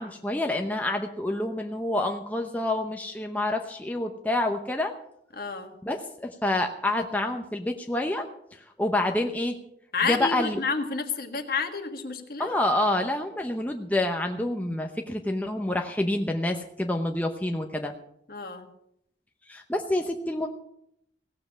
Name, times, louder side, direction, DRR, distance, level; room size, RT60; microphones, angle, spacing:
voice 1, 0.0-4.9 5.8-8.3 8.8-9.5 10.1-10.6 12.4-17.9 19.5-20.5, left 1 dB, 10° left, 3 dB, 0.8 m, -27 dB
voice 2, 5.3-5.7 9.9-12.6 18.3-18.7, left 5 dB, 55° left, 5 dB, 1.7 m, -30 dB
17.0 x 7.7 x 7.4 m, 0.76 s
head